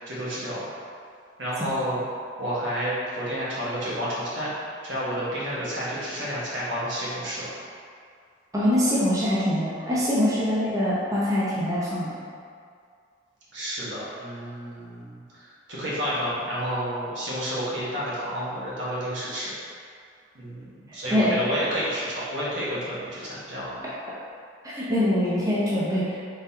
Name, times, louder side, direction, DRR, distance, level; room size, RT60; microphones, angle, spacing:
voice 1, 0.1-0.6 1.4-2.0 2.4-4.5 4.8-7.5 13.5-15.4 15.7-19.5 20.3-23.8, equal, 75° right, -8 dB, 1.3 m, -30 dB
voice 2, 8.5-12.1 21.1-21.4 24.7-26.1, equal, 20° right, -9 dB, 0.7 m, -23 dB
3.9 x 3.9 x 2.7 m, 2.3 s
head